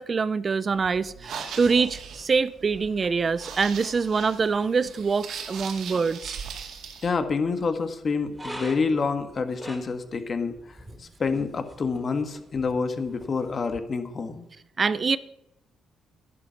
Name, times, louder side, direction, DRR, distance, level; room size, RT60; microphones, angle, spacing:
voice 1, 0.0-6.4 14.8-15.2, right 5 dB, 40° right, 0.5 m, -25 dB
sound 1, 0.7-13.8, right 1 dB, 10° right, 3.0 m, -48 dB
sound 2, 1.1-7.1, right 6 dB, 70° right, 2.2 m, -39 dB
voice 2, 7.0-14.4, left 4 dB, 40° left, 1.5 m, -28 dB
11.0 x 10.5 x 5.9 m
cardioid pair, 90°, 0 cm